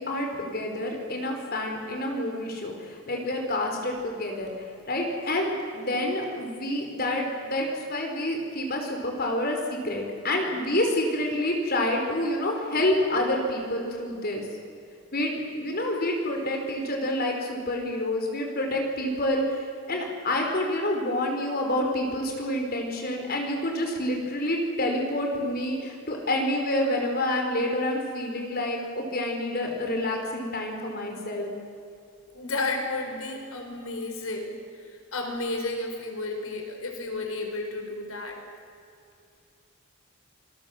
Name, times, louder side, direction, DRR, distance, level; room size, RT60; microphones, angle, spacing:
voice 1, 0.0-14.5 15.1-31.5, left 1 dB, 45° left, 2 dB, 4.8 m, -28 dB
voice 2, 32.3-34.9 35.1-38.4, left 2 dB, 90° left, 3 dB, 4.7 m, -32 dB
26.5 x 19.5 x 7.6 m, 2.5 s
head